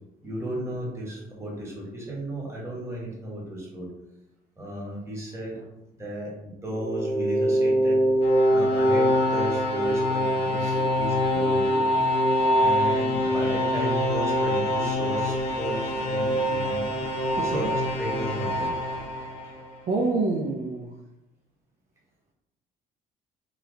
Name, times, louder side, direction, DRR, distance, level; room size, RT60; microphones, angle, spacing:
voice 1, 0.2-3.9 4.6-5.6 6.0-8.0 8.5-11.8 12.6-16.9 17.3-17.7 18.0-18.7, right 1 dB, 15° right, -4 dB, 1.3 m, -34 dB
sound 1, 6.7-19.8, equal, 80° left, 0.8 m, -24 dB
voice 2, 12.1-12.9 17.4-17.7 19.9-21.0, right 3 dB, 50° right, -1 dB, 0.5 m, -29 dB
2.9 x 2.2 x 3.7 m, 0.95 s
cardioid pair, 110°, 17 cm